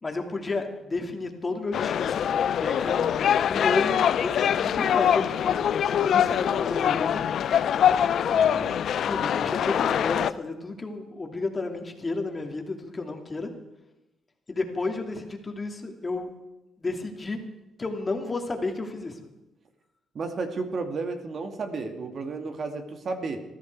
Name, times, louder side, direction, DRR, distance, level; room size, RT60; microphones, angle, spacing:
voice 1, 0.0-7.2 9.1-13.5 14.5-16.3 16.8-17.4 17.8-19.2, left 3 dB, 25° left, 3 dB, 2.8 m, -32 dB
sound 1, 1.7-10.3, left 9 dB, 65° left, 0.6 m, -24 dB
voice 2, 8.3-8.8 20.1-23.4, right 3 dB, 50° right, 6 dB, 2.3 m, -33 dB
21.0 x 14.5 x 4.7 m, 0.99 s
cardioid pair, 90°, 0 cm